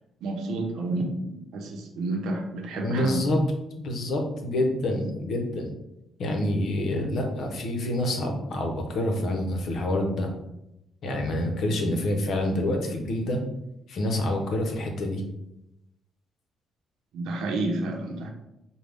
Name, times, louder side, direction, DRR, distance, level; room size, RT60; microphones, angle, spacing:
voice 1, 0.2-3.2 17.1-18.3, right 2 dB, 80° right, 3 dB, 0.7 m, -30 dB
voice 2, 2.8-3.4 3.8-5.7 6.2-10.3 11.0-13.4 13.9-15.2, left 1 dB, 65° left, 3 dB, 0.9 m, -27 dB
5.2 x 2.3 x 3.5 m, 0.88 s
cardioid pair, 90°, 0 cm